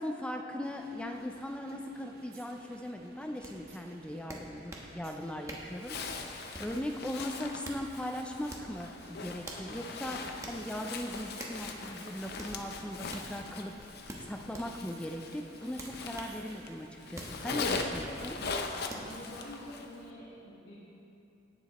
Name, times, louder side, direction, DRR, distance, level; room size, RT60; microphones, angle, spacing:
voice 1, 0.0-6.0 6.6-13.8 14.2-18.4, left 1 dB, 5° left, 3 dB, 0.4 m, -39 dB
sound 1, 0.6-18.5, right 2 dB, 55° right, 1.0 m, -56 dB
sound 2, 3.4-3.5 4.3-4.9 5.5-5.7 6.5-6.8 7.4-7.8 8.5-8.7 9.4-9.7 10.4-10.6 11.4-11.6 12.4-12.5 13.1-13.3 14.1-14.7 15.8-16.4 17.1-17.4 17.9-18.1 18.9-19.1, right 1 dB, 15° right, 1.0 m, -45 dB
Zipper (clothing), 5.8-16.7 17.0-20.0, left 4 dB, 55° left, 0.6 m, -40 dB
voice 2, 18.9-20.7, left 1 dB, 70° left, -7 dB, 1.6 m, -47 dB
17.5 x 7.1 x 3.0 m, 2.8 s
head